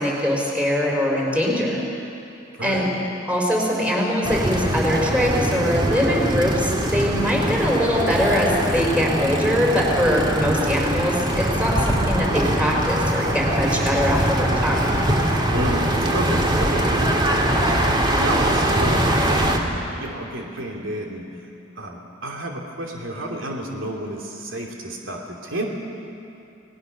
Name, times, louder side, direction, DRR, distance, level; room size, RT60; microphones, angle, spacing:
voice 1, 0.0-1.8 2.6-2.9 3.3-14.9, equal, 5° right, -2 dB, 4.8 m, -22 dB
sound 1, 4.2-19.6, right 1 dB, 25° right, 2.2 m, -22 dB
voice 2, 15.5-17.1 18.2-21.2 21.8-25.7, right 1 dB, 75° right, 0 dB, 2.9 m, -30 dB
29.0 x 19.5 x 6.6 m, 2.7 s
head